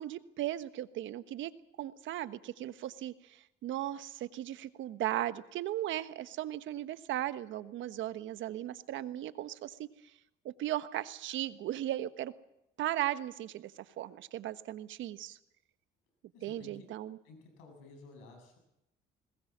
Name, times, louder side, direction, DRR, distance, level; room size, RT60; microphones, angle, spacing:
voice 1, 0.0-1.5 1.8-9.9 10.4-12.3 12.8-15.4 16.4-17.2, right 13 dB, 70° right, 12 dB, 1.3 m, -37 dB
voice 2, 16.3-16.8 17.2-18.6, left 3 dB, 85° left, 4 dB, 7.6 m, -53 dB
21.5 x 20.0 x 7.4 m, 0.86 s
supercardioid pair, 65°, 20 cm